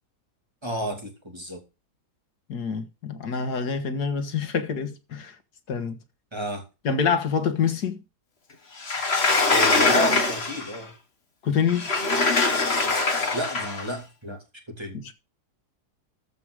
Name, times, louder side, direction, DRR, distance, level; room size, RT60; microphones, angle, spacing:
voice 1, 0.6-1.6 6.3-6.6 9.5-10.9 13.3-15.0, right 1 dB, 15° right, 2.6 m, -31 dB
voice 2, 2.5-5.4 5.7-6.0 6.8-8.0 11.4-11.9 14.9-15.1, left 6 dB, 90° left, 1.9 m, -26 dB
Sliding door, 8.8-10.8 11.7-13.9, left 3 dB, 40° left, 1.9 m, -23 dB
14.0 x 4.9 x 6.3 m
omnidirectional pair, 1.7 m